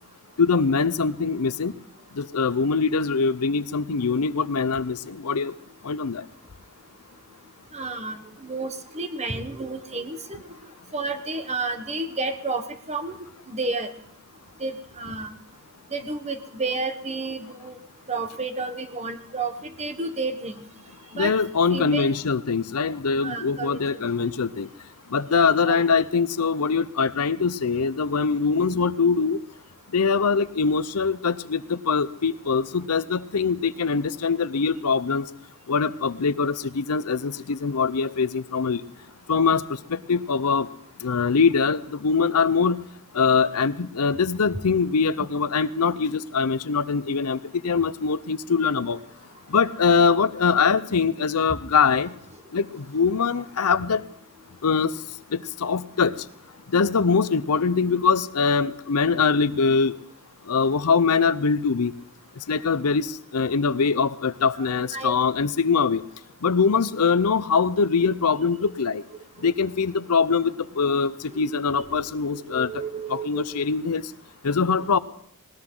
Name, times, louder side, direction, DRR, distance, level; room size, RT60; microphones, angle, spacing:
voice 1, 0.4-1.7 2.2-5.5 5.8-6.2 21.1-24.7 25.1-29.4 29.9-35.3 35.7-38.8 39.3-40.7 41.0-42.8 43.1-49.0 49.5-52.1 52.5-54.0 54.6-54.9 55.3-56.1 56.7-59.9 60.5-61.9 62.5-66.0 66.4-69.0 69.4-72.7 73.1-74.0 74.4-75.0, left 5 dB, 90° left, 15 dB, 0.7 m, -23 dB
voice 2, 7.7-10.4 10.9-13.1 13.5-13.9 14.6-15.3 15.9-17.8 18.1-20.6 21.1-21.3 21.7-22.1 23.2-24.0 25.4-25.8 64.6-65.1 71.3-71.5 71.8-73.6 74.8-74.9, right 3 dB, 30° right, 7 dB, 1.3 m, -31 dB
19.5 x 19.0 x 3.8 m, 0.66 s
head